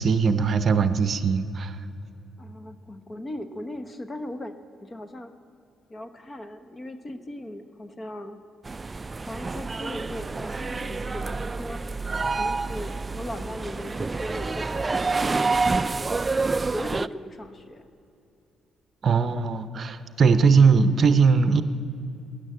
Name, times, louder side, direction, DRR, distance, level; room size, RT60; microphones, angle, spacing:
voice 1, 0.0-1.8 19.0-21.6, right 5 dB, 50° right, 12 dB, 0.7 m, -20 dB
voice 2, 2.4-4.5 4.8-5.3 5.9-8.4 9.3-11.8 12.4-16.1 16.7-17.9, left 1 dB, 30° left, 9 dB, 1.0 m, -38 dB
sound 1, 8.6-17.1, right 3 dB, 25° right, 0.3 m, -28 dB
13.0 x 10.0 x 7.8 m, 2.8 s
cardioid pair, 90°, 0 cm